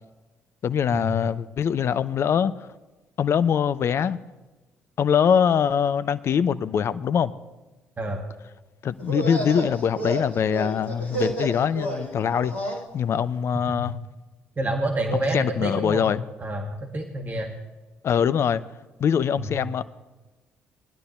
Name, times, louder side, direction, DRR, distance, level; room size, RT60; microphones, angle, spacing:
voice 1, 0.6-2.5 3.2-4.2 5.0-7.3 8.8-12.5 12.9-13.9 15.1-16.2 18.0-18.6 19.0-19.8, left 8 dB, 45° left, 15 dB, 0.5 m, -23 dB
sound 1, 9.0-12.8, right 1 dB, 75° left, 1.7 m, -31 dB
voice 2, 14.6-16.1 16.4-17.5 19.4-19.5, right 1 dB, 30° right, 2 dB, 1.6 m, -28 dB
19.5 x 11.5 x 3.1 m, 1.2 s
figure-of-eight pair, 45°, 6 cm